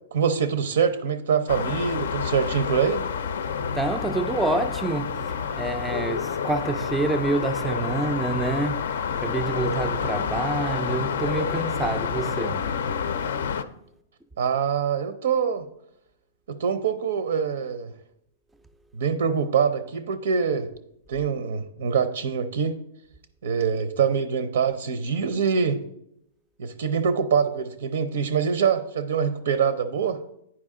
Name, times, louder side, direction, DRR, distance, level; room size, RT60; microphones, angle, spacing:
voice 1, 0.1-3.0 14.4-15.6 16.5-17.9 18.9-20.7 21.1-22.8 23.4-25.8 26.6-30.2, right 6 dB, 70° right, 0.5 m, -24 dB
sound 1, 1.5-13.6, left 7 dB, 75° left, 0.4 m, -28 dB
voice 2, 3.7-12.7, right 3 dB, 5° right, 0.4 m, -27 dB
9.7 x 4.8 x 3.6 m
hypercardioid pair, 165°, 0 cm